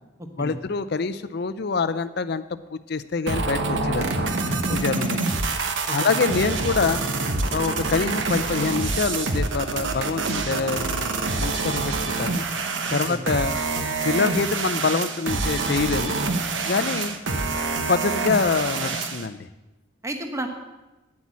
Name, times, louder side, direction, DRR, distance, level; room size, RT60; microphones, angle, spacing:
voice 1, 0.4-2.4 2.7-4.3 4.7-5.4 5.9-7.0 7.5-12.4 12.9-13.6 14.0-16.2 16.6-17.2 17.9-19.5, left 4 dB, 55° left, 13 dB, 0.5 m, -25 dB
sound 1, 3.3-19.3, right 3 dB, 70° right, 1.0 m, -26 dB
voice 2, 4.7-5.1 5.9-6.2 13.1-13.2 20.0-20.5, right 1 dB, 15° right, 5 dB, 1.0 m, -32 dB
9.7 x 8.1 x 7.4 m, 1.1 s
head